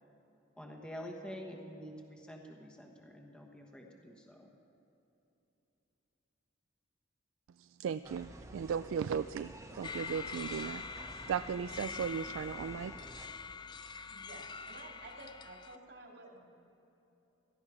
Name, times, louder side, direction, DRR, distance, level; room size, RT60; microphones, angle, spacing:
voice 1, 0.6-4.5, equal, 5° left, 1 dB, 1.3 m, -47 dB
voice 2, 7.6-10.8 11.3-12.9, right 7 dB, 85° right, 12 dB, 0.3 m, -36 dB
sound 1, 8.0-13.3, right 1 dB, 15° right, 1.2 m, -51 dB
sound 2, 9.8-15.8, left 5 dB, 25° left, 0.4 m, -44 dB
voice 3, 14.1-16.7, right 2 dB, 60° right, 0 dB, 2.6 m, -52 dB
18.0 x 13.0 x 4.9 m, 3.0 s
head